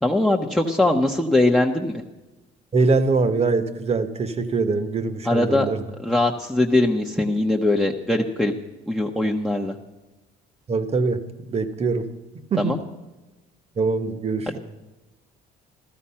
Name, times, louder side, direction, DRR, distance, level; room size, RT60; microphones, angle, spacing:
voice 1, 0.0-2.0 5.2-5.7 6.0-8.5 8.9-9.7 12.6-12.8 14.5-14.6, left 2 dB, ahead, 1 dB, 1.0 m, -21 dB
voice 2, 2.7-5.8 10.7-12.1 12.5-12.7 13.8-14.6, right 4 dB, 40° right, 11 dB, 1.4 m, -23 dB
14.5 x 14.0 x 5.7 m, 1.1 s
cardioid pair, 110°, 17 cm